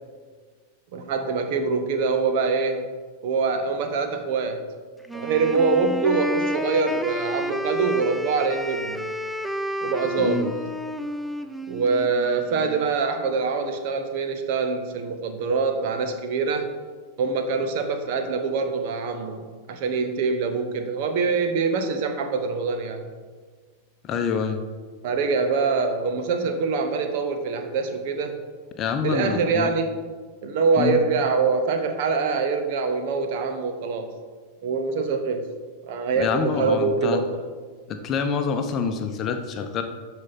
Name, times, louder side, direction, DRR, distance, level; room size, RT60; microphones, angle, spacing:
voice 1, 0.9-2.8 3.2-4.6 5.1-9.1 9.8-10.6 11.7-16.7 17.2-23.1 25.0-28.4 29.0-29.9 30.4-34.1 34.6-35.4 35.9-37.2, right 4 dB, 50° right, 6 dB, 1.0 m, -24 dB
Wind instrument woodwind instrument, 5.0-12.9, equal, ahead, 0.5 m, -30 dB
voice 2, 10.2-10.5 24.0-24.6 28.8-29.7 30.8-31.0 36.2-37.2 37.9-39.8, left 6 dB, 30° left, 6 dB, 0.8 m, -26 dB
12.0 x 4.4 x 4.2 m, 1.5 s
figure-of-eight pair, 90°, 0 cm